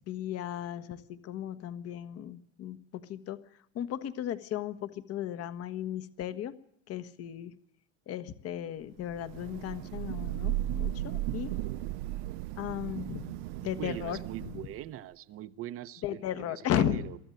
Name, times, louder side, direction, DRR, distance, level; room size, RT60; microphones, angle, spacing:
voice 1, 0.1-3.4 3.7-6.5 6.9-7.5 8.1-11.5 12.6-13.3 13.6-14.2 16.0-17.1, left 11 dB, 45° left, 1.4 m, -35 dB
Thunder / Rain, 9.1-14.9, right 14 dB, 75° right, 0.8 m, -35 dB
voice 2, 13.8-17.2, right 12 dB, 40° right, 0.9 m, -41 dB
23.0 x 14.0 x 9.2 m
supercardioid pair, 125°, 33 cm